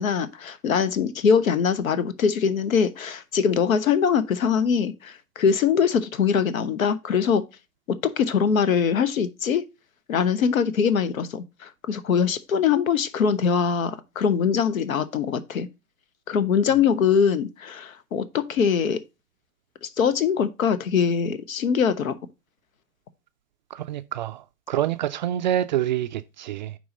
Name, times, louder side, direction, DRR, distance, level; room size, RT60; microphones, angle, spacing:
voice 1, 0.0-7.4 7.9-9.6 10.1-15.7 16.3-19.0 19.8-22.1, left 6 dB, 65° left, 0.8 m, -22 dB
voice 2, 23.7-26.8, right 12 dB, 35° right, 0.4 m, -27 dB
9.2 x 3.1 x 5.1 m
figure-of-eight pair, 95°, 44 cm